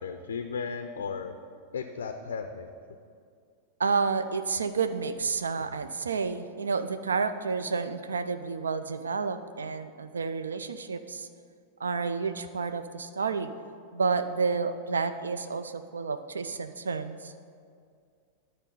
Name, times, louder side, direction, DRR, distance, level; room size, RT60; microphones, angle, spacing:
voice 1, 0.0-1.3 1.7-2.7, left 5 dB, 65° left, 7 dB, 0.4 m, -35 dB
voice 2, 3.8-11.3 11.8-13.5 13.9-17.3, right 5 dB, 70° right, 10 dB, 0.3 m, -30 dB
11.0 x 4.2 x 5.4 m, 2.2 s
figure-of-eight pair, 90°, 0 cm